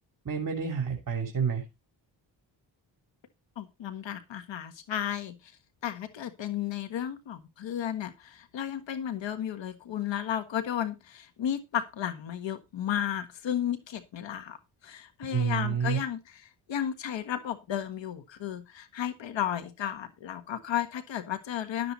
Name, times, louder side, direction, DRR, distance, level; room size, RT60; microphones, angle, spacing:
voice 1, 0.2-1.6 15.3-16.0, right 6 dB, 45° right, 3 dB, 3.1 m, -29 dB
voice 2, 3.6-5.3 5.8-14.6 14.8-21.9, left 10 dB, 85° left, 10 dB, 1.5 m, -33 dB
12.0 x 7.8 x 4.1 m, 0.24 s
cardioid pair, 85°, 44 cm